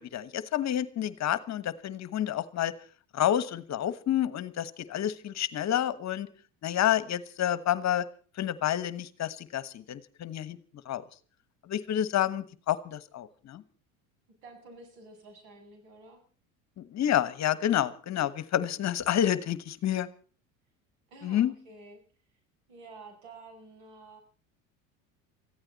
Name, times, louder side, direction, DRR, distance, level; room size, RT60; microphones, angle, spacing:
voice 1, 0.0-2.7 3.1-6.3 6.6-8.1 8.4-10.6 10.8-11.0 11.7-13.6 16.8-20.1 21.2-21.5, left 11 dB, 40° left, 16 dB, 1.2 m, -29 dB
voice 2, 14.4-16.2 21.1-22.0 22.7-24.2, right 3 dB, 70° right, 4 dB, 7.6 m, -50 dB
23.5 x 15.0 x 4.1 m, 0.41 s
hypercardioid pair, 85°, 40 cm